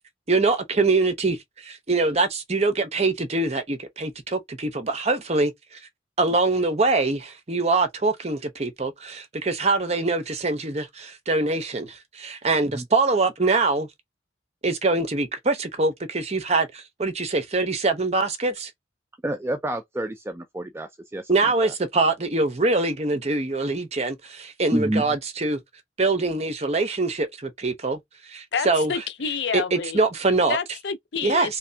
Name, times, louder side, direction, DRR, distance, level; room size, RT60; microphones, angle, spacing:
voice 1, 0.3-5.5 6.2-13.9 14.6-18.7 21.3-25.6 26.0-28.0 28.3-28.9 29.5-30.6 31.2-31.6, right 3 dB, 35° right, 0.8 m, -24 dB
voice 2, 19.2-21.7 24.7-25.1, right 1 dB, 15° right, 0.3 m, -29 dB
voice 3, 28.5-30.0 30.5-31.6, left 6 dB, 70° left, 0.6 m, -29 dB
3.4 x 3.1 x 2.7 m
head